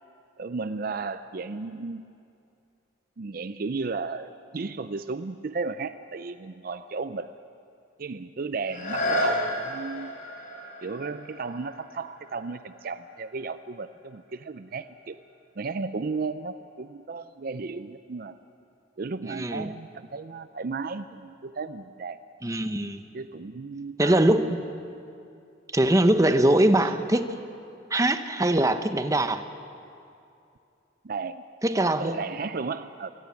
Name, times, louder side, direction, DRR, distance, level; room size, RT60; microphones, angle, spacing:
voice 1, 0.4-2.0 3.2-7.3 8.0-10.1 10.8-15.2 15.6-18.4 19.0-22.2 23.1-24.2 26.8-26.9 31.0-31.4 32.0-33.1, right 4 dB, 50° right, 12 dB, 0.5 m, -34 dB
sound 1, 8.6-14.3 14.9-15.0, left 1 dB, 45° left, 4.8 m, -33 dB
voice 2, 19.4-19.7 22.4-23.0 24.0-24.6 25.7-27.2 27.9-29.4 31.6-32.2, right 1 dB, 15° right, 9 dB, 0.8 m, -22 dB
23.5 x 16.5 x 8.4 m, 2.6 s
head